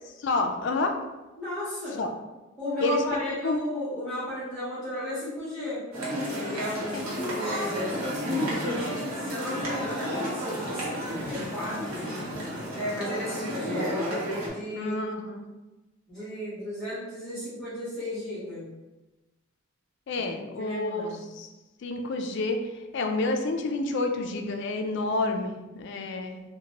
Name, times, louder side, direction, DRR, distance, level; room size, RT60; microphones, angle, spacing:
voice 1, 0.2-1.0 2.0-2.1 2.8-3.0 3.4-3.6 6.9-7.1 14.7-15.4 20.1-21.5 21.8-22.6 22.9-26.4, left 3 dB, 55° left, 4 dB, 0.3 m, -29 dB
voice 2, 1.4-2.0 2.6-5.8 6.2-7.9 8.7-8.8 9.1-12.1 12.7-14.0 14.4-15.0 16.1-18.7 20.2-21.2, left 1 dB, 5° left, -15 dB, 1.0 m, -34 dB
sound 1, 5.9-14.5, equal, 85° right, 0.9 m, -31 dB
2.9 x 2.1 x 2.8 m, 1.1 s
head